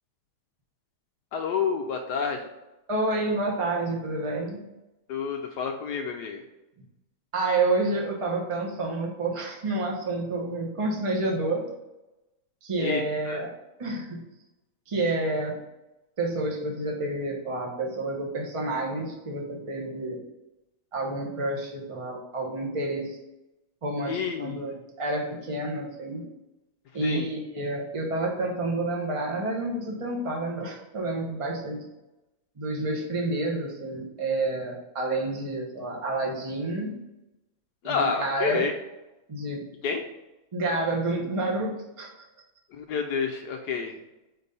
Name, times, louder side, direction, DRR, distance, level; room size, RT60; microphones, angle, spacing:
voice 1, 1.3-2.4 5.1-6.4 12.8-13.4 24.1-24.7 27.0-27.2 37.8-38.7 39.8-40.0 42.7-44.0, left 6 dB, 80° left, 3 dB, 0.9 m, -29 dB
voice 2, 2.9-4.6 7.3-11.6 12.6-13.5 13.8-14.2 14.9-15.6 16.2-20.2 20.9-23.2 23.8-26.2 26.9-31.9 32.6-37.0 37.8-38.7 39.3-39.6 40.5-41.7 42.0-42.1, right 2 dB, 25° right, -1 dB, 0.7 m, -29 dB
4.4 x 4.1 x 5.2 m, 0.98 s
omnidirectional pair, 2.2 m